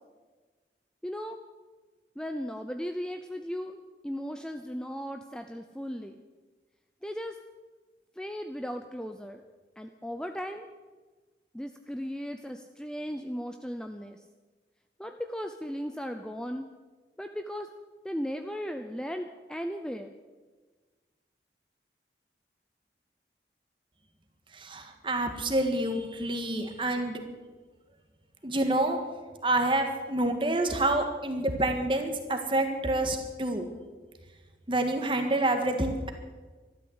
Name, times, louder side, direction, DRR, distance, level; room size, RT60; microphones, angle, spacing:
voice 1, 1.0-1.4 2.2-6.2 7.0-7.4 8.2-9.4 9.8-10.7 11.5-14.2 15.0-16.7 17.2-17.7 18.0-20.1, equal, 5° left, 6 dB, 0.5 m, -36 dB
voice 2, 24.5-27.2 28.4-29.0 29.4-33.7 34.7-36.1, right 1 dB, 30° right, 5 dB, 1.7 m, -28 dB
13.0 x 12.0 x 8.1 m, 1.3 s
head